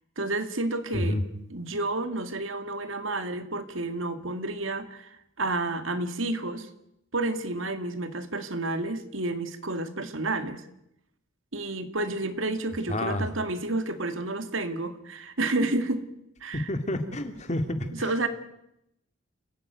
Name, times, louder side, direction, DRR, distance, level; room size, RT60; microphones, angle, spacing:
voice 1, 0.2-1.2 1.5-6.7 7.1-10.6 11.5-16.0 16.4-16.7 17.9-18.3, right 2 dB, 70° right, 9 dB, 2.2 m, -30 dB
voice 2, 12.9-13.2 16.5-17.8, left 1 dB, 35° left, 7 dB, 2.4 m, -28 dB
29.5 x 16.5 x 9.3 m, 0.82 s
head